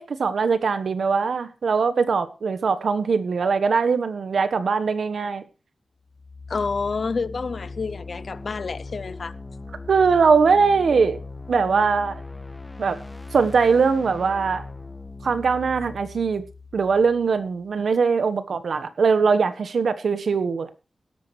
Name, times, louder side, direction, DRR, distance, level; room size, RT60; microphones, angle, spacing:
voice 1, 0.0-5.4 9.9-11.2 11.5-12.2 12.8-13.0 13.3-14.6 15.2-16.4 16.7-20.7, right 5 dB, 80° right, 1.3 m, -21 dB
sound 1, 6.0-17.8, left 3 dB, 15° left, 1.4 m, -39 dB
voice 2, 6.5-9.4, left 4 dB, 55° left, 0.6 m, -28 dB
17.5 x 12.5 x 3.3 m
wide cardioid pair, 135°, 0 cm